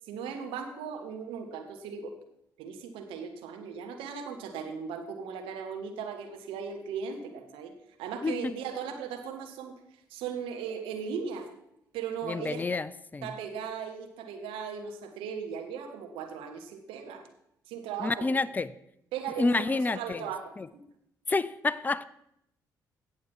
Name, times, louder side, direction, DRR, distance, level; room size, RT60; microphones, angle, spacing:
voice 1, 0.0-2.1 2.6-7.7 8.0-9.7 10.1-11.5 11.9-12.6 13.2-17.2 17.7-18.3 19.1-20.8, right 6 dB, 65° right, 4 dB, 1.4 m, -37 dB
voice 2, 8.2-8.5 12.3-13.3 18.0-18.7 19.4-20.2 20.6-20.7 21.3-22.0, left 3 dB, 15° left, 18 dB, 0.5 m, -29 dB
17.0 x 6.7 x 4.5 m, 0.78 s
figure-of-eight pair, 40°, 10 cm